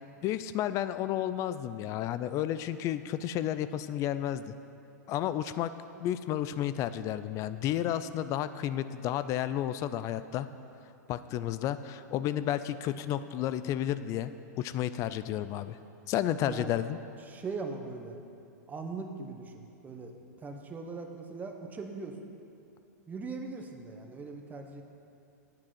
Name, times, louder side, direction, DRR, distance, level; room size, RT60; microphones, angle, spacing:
voice 1, 0.2-4.5 5.1-5.7 6.0-10.5 11.1-14.3 14.6-15.8 16.1-17.0, left 11 dB, 35° left, 13 dB, 0.4 m, -32 dB
voice 2, 16.4-16.7 17.2-18.2 18.7-20.1 20.4-22.3 23.1-24.8, right 4 dB, 15° right, 3 dB, 1.0 m, -40 dB
8.8 x 6.0 x 7.6 m, 2.7 s
hypercardioid pair, 120°, 10 cm